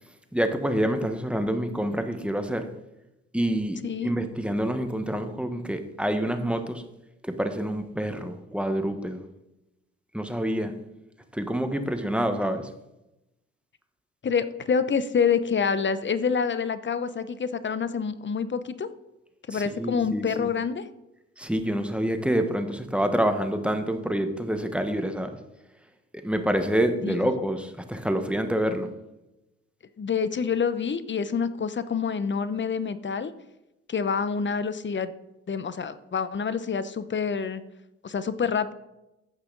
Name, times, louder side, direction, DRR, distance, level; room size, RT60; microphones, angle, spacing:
voice 1, 0.3-2.7 3.3-6.8 7.2-9.2 10.1-10.7 11.3-12.7 19.5-20.5 21.4-25.3 26.2-28.9, right 1 dB, 5° right, 7 dB, 1.3 m, -27 dB
voice 2, 14.2-18.9 19.5-20.9 27.0-27.3 30.0-33.3 33.9-35.1 35.5-37.6 38.0-38.7, left 6 dB, 40° left, 13 dB, 0.9 m, -27 dB
14.5 x 5.7 x 4.0 m, 0.93 s
supercardioid pair, 50°, 31 cm